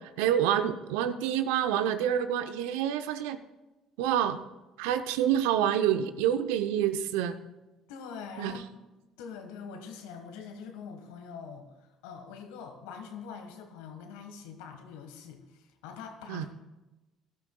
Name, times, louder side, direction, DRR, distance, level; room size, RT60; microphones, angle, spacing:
voice 1, 0.2-3.4 4.0-4.4 4.8-7.3 8.4-8.5 16.3-16.5, right 10 dB, 75° right, 11 dB, 0.6 m, -27 dB
voice 2, 7.9-8.8 9.2-16.5, left 6 dB, 75° left, 6 dB, 1.5 m, -44 dB
16.5 x 12.5 x 2.3 m, 1.1 s
hypercardioid pair, 60°, 0 cm